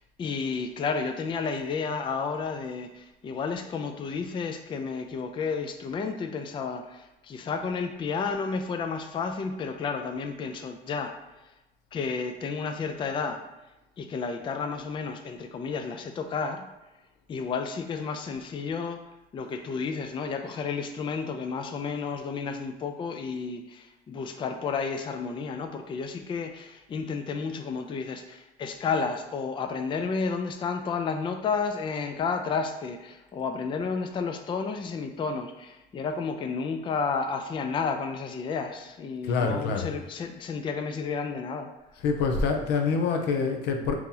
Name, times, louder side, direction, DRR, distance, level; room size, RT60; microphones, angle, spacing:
voice 1, 0.2-11.1 11.9-13.4 14.0-16.7 17.3-19.0 19.3-41.7, left 5 dB, 30° left, 6 dB, 0.3 m, -31 dB
voice 2, 39.2-39.9 42.0-43.9, left 4 dB, 85° left, 4 dB, 0.5 m, -26 dB
2.9 x 2.7 x 3.7 m, 0.97 s
cardioid pair, 110°, 17 cm